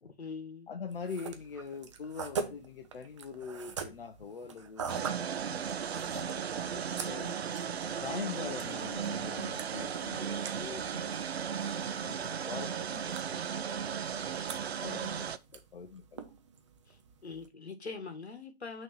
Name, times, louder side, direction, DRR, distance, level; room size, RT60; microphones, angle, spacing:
voice 1, 0.0-0.7 9.8-9.9 16.9-18.8, left 4 dB, 80° left, 1.7 m, -43 dB
voice 2, 0.7-4.9 5.8-7.4 7.9-11.3 11.6-14.2 14.8-16.3, left 5 dB, 60° left, 0.8 m, -44 dB
sound 1, 0.9-17.5, right 6 dB, 30° right, 0.6 m, -45 dB
sound 2, 4.9-15.4, right 7 dB, 75° right, 0.6 m, -36 dB
6.0 x 3.1 x 5.7 m
figure-of-eight pair, 150°, 32 cm